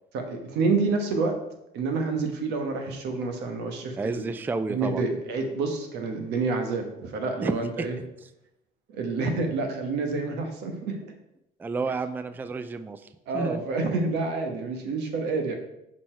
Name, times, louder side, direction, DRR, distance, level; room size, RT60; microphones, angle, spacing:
voice 1, 0.1-1.3 1.7-4.2 4.7-8.0 8.9-11.0 13.3-15.6, right 3 dB, 85° right, 5 dB, 1.2 m, -28 dB
voice 2, 4.0-5.0 7.4-7.9 11.6-13.0 13.3-13.6, right 3 dB, 10° right, 11 dB, 0.3 m, -30 dB
6.3 x 4.2 x 4.5 m, 0.85 s
cardioid pair, 110°, 17 cm